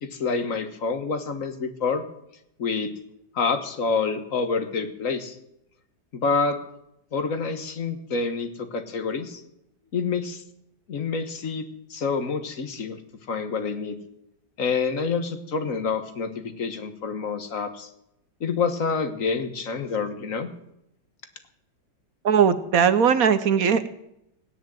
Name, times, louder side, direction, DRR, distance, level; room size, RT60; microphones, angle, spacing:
voice 1, 0.0-2.0 2.6-2.9 3.3-5.4 6.1-6.6 7.1-9.4 9.9-10.4 10.9-13.0 13.3-13.9 14.6-17.9 18.4-20.5, left 5 dB, 45° left, 9 dB, 1.6 m, -27 dB
voice 2, 22.2-23.9, right 7 dB, 60° right, 12 dB, 1.1 m, -19 dB
17.0 x 10.0 x 7.7 m, 0.81 s
omnidirectional pair, 2.0 m